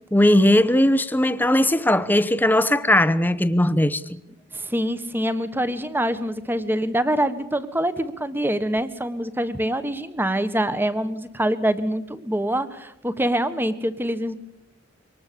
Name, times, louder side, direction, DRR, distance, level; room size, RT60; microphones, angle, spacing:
voice 1, 0.1-4.0, left 1 dB, 10° left, 0.9 m, -18 dB
voice 2, 4.5-14.3, right 1 dB, 10° right, 1.4 m, -25 dB
24.5 x 19.5 x 7.0 m
head